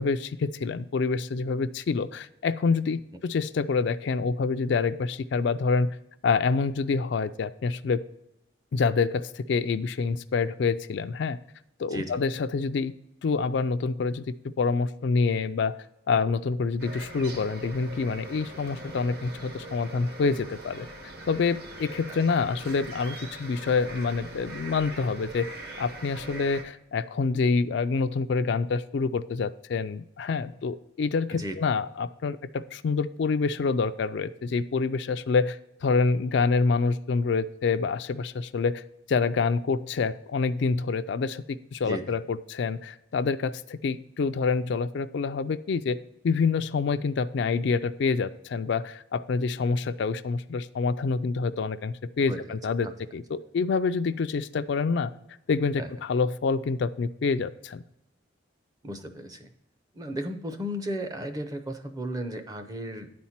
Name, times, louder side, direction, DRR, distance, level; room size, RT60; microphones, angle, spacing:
voice 1, 0.0-6.0 6.2-8.0 8.7-11.4 11.8-12.9 13.2-15.7 16.1-20.9 21.3-25.5 25.8-38.8 39.1-41.4 41.7-46.0 46.2-55.1 55.5-57.8, left 4 dB, 60° left, 11 dB, 0.3 m, -27 dB
voice 2, 11.9-12.2 22.1-22.2 31.3-31.6 41.8-42.2 52.3-52.4 52.8-52.9 55.8-55.9 58.8-59.5 59.9-63.1, equal, 20° right, 8 dB, 0.6 m, -35 dB
sound 1, 16.8-26.6, right 2 dB, 50° right, 1.2 m, -42 dB
9.9 x 4.2 x 5.7 m, 0.82 s
head